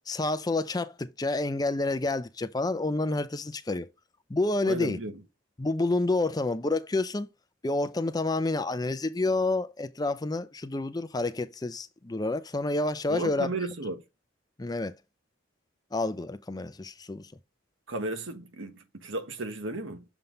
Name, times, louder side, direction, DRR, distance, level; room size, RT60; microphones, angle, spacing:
voice 1, 0.1-3.9 4.3-5.0 5.6-7.3 7.6-13.5 14.6-15.0 15.9-17.3, left 2 dB, 20° left, 0.5 m, -29 dB
voice 2, 4.7-5.1 13.1-14.0 17.9-20.0, right 2 dB, 85° right, 1.4 m, -34 dB
7.1 x 3.7 x 3.8 m
head